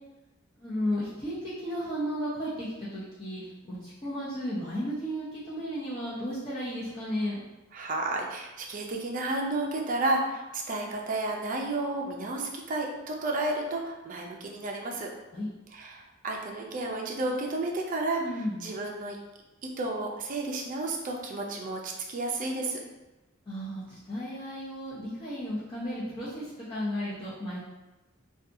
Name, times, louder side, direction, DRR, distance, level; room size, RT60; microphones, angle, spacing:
voice 1, 0.6-7.4 15.3-15.5 18.2-18.6 23.5-27.6, equal, 25° left, -11 dB, 0.6 m, -34 dB
voice 2, 7.7-15.1 15.7-18.2 18.6-19.2 19.6-22.8, right 2 dB, 40° right, 0 dB, 0.4 m, -32 dB
2.7 x 2.3 x 2.5 m, 1.1 s
head